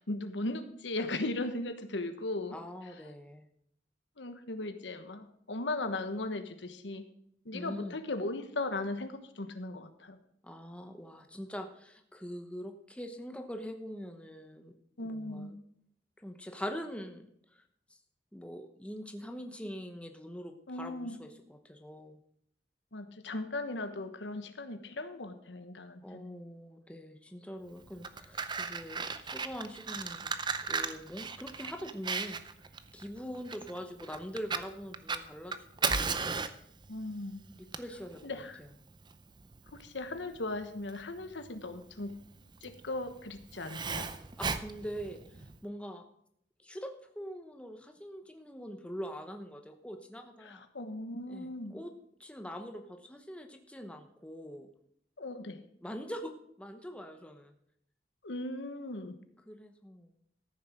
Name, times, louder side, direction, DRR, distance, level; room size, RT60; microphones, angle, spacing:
voice 1, 0.0-2.6 4.2-7.1 7.4-10.2 15.0-15.5 20.7-21.2 22.9-26.4 36.9-37.4 38.2-38.6 39.7-42.1 42.6-44.1 50.4-51.8 55.2-55.6 58.2-59.2, left 2 dB, 85° left, 9 dB, 1.2 m, -37 dB
voice 2, 2.5-3.5 7.5-8.0 10.4-14.7 15.0-15.6 16.2-17.6 17.9-18.0 18.3-22.2 26.0-29.0 29.3-30.3 30.7-32.4 32.9-36.2 37.5-38.7 44.4-46.0 46.6-50.6 51.3-51.9 52.2-54.7 55.8-56.3 56.6-57.5 59.5-60.1, equal, 5° left, 5 dB, 0.9 m, -43 dB
Fire, 27.8-45.6, right 5 dB, 25° right, 0.6 m, -37 dB
14.0 x 6.8 x 6.2 m, 0.70 s
head